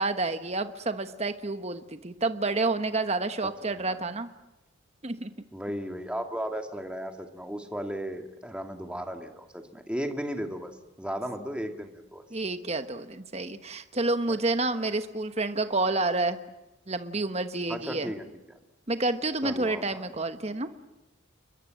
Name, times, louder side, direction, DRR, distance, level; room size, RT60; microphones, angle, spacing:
voice 1, 0.0-4.3 5.0-5.3 12.3-16.4 16.9-18.1 18.9-20.7, right 2 dB, 30° right, 9 dB, 1.2 m, -29 dB
voice 2, 3.6-4.0 5.5-10.7 11.0-12.2 14.3-14.4 17.7-18.3 19.4-20.1, equal, 5° right, 5 dB, 2.1 m, -35 dB
29.0 x 22.5 x 7.7 m, 0.98 s
head